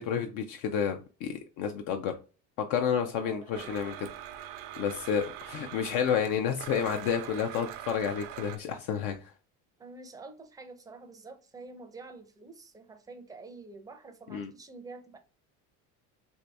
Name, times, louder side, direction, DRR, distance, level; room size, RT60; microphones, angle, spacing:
voice 1, 0.0-2.1 2.6-4.1 4.8-9.3 14.3-14.5, left 7 dB, 65° left, 0.5 m, -30 dB
voice 2, 3.2-3.8 9.8-15.2, right 3 dB, 10° right, 0.4 m, -47 dB
Domestic sounds home sounds, 3.5-8.6, right 11 dB, 80° right, 0.5 m, -43 dB
2.7 x 2.6 x 3.3 m
supercardioid pair, 110°, 35 cm